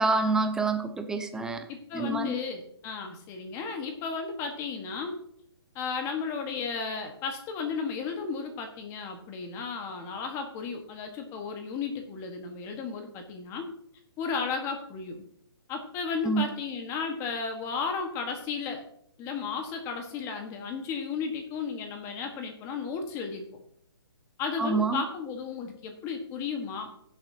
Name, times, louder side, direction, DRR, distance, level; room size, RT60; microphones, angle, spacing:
voice 1, 0.0-1.6 1.9-2.4 16.2-16.5 24.6-25.0, right 3 dB, 5° right, 7 dB, 0.6 m, -27 dB
voice 2, 1.7-5.2 5.7-13.7 14.2-15.2 15.7-18.8 19.2-23.6 24.4-26.9, left 5 dB, 20° left, 4 dB, 1.5 m, -34 dB
16.5 x 7.4 x 2.8 m, 0.69 s
hypercardioid pair, 155°, 14 cm